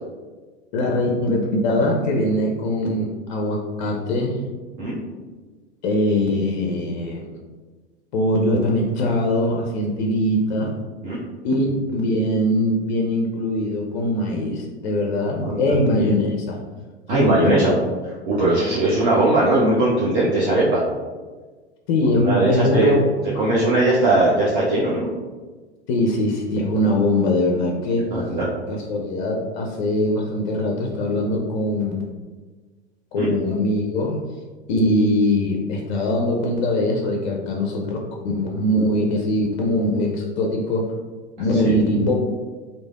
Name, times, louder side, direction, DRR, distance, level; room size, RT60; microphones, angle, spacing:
voice 1, 0.7-4.4 5.8-7.3 8.1-10.7 11.4-16.6 17.2-17.8 21.9-23.5 25.9-28.1 28.7-32.0 33.1-34.2 34.7-38.0 38.2-40.9 41.4-42.1, left 1 dB, 45° left, 0 dB, 0.4 m, -22 dB
voice 2, 15.4-15.7 17.1-17.7 18.3-20.8 22.0-22.9 23.4-25.1 28.1-28.4 33.2-33.3 41.5-41.7, right 2 dB, 45° right, -8 dB, 0.7 m, -19 dB
3.1 x 2.0 x 2.3 m, 1.3 s
figure-of-eight pair, 95°, 33 cm